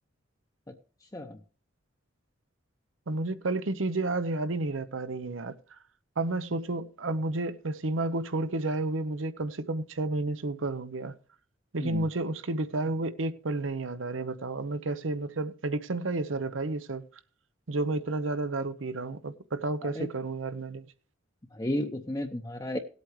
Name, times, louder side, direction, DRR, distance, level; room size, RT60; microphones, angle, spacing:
voice 1, 3.1-5.5 6.2-11.1 11.7-17.1 17.7-20.9, right 2 dB, 85° right, 0.8 m, -31 dB
voice 2, 21.5-22.8, left 1 dB, 20° left, 0.7 m, -33 dB
18.0 x 8.3 x 3.2 m
head